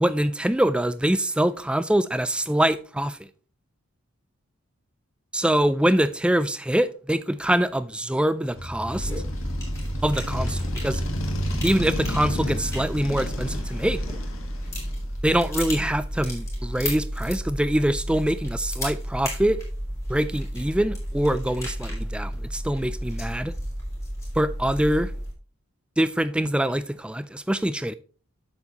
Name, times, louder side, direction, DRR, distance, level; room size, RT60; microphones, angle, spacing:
voice 1, 0.0-3.3 5.3-9.1 10.0-11.0 11.6-14.0 15.2-19.6 20.1-23.5 24.4-25.1 26.0-27.9, right 1 dB, 5° right, 0.3 m, -24 dB
Motorcycle, 8.5-15.2, left 1 dB, 70° left, 1.6 m, -32 dB
sound 1, 8.9-25.3, equal, 15° left, 3.1 m, -32 dB
8.2 x 7.0 x 2.9 m
head